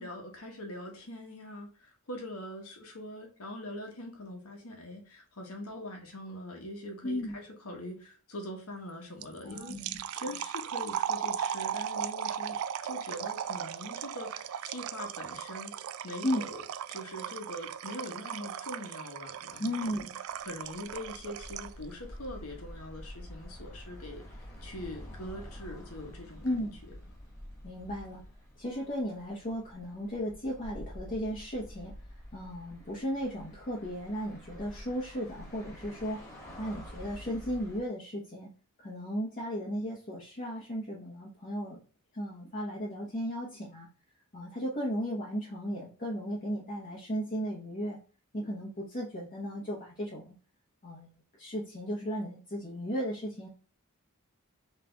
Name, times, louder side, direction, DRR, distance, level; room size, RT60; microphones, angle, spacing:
voice 1, 0.0-9.8 10.1-15.7 16.0-16.6 16.9-20.0 20.4-26.4 26.9-27.0, left 1 dB, 80° left, 1.3 m, -43 dB
voice 2, 7.0-7.4 9.4-10.4 16.2-16.5 19.6-20.1 26.4-26.8 27.6-28.2 28.6-31.9 32.3-36.2 36.6-38.5 38.8-41.8 42.1-43.9 44.3-48.0 48.3-50.3 50.8-51.1 51.4-53.5, equal, 40° left, 1.1 m, -35 dB
sound 1, 9.2-21.8, right 9 dB, 65° right, 0.3 m, -37 dB
sound 2, 20.3-37.8, equal, 15° left, 1.5 m, -48 dB
3.8 x 3.3 x 3.4 m
head